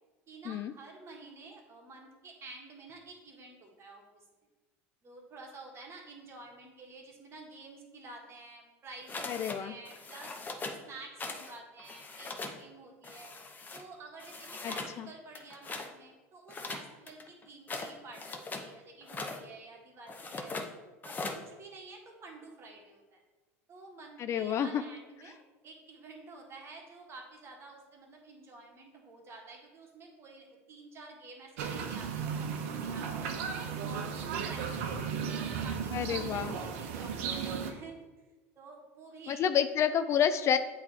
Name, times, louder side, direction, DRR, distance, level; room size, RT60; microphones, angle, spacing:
voice 1, 0.3-4.0 5.0-10.4 10.9-13.3 13.7-20.5 21.0-23.2 23.7-33.4 33.8-38.0 38.5-39.4, right 3 dB, 35° right, 0 dB, 1.6 m, -50 dB
sound 1, 9.1-9.6 9.8-10.8 11.2-11.5 11.8-12.6 13.0-13.8 14.2-14.9 15.3-15.9 16.5-18.7 19.0-19.4 20.1-20.7 21.0-21.4, left 3 dB, 25° left, 0.8 m, -40 dB
voice 2, 9.3-9.7 14.6-15.1 24.2-24.8 35.9-36.5 39.3-40.6, left 8 dB, 40° left, 10 dB, 0.4 m, -29 dB
sound 2, 31.6-37.7, right 6 dB, 70° right, 0.8 m, -35 dB
8.0 x 3.2 x 4.2 m, 1.2 s
hypercardioid pair, 90°, 7 cm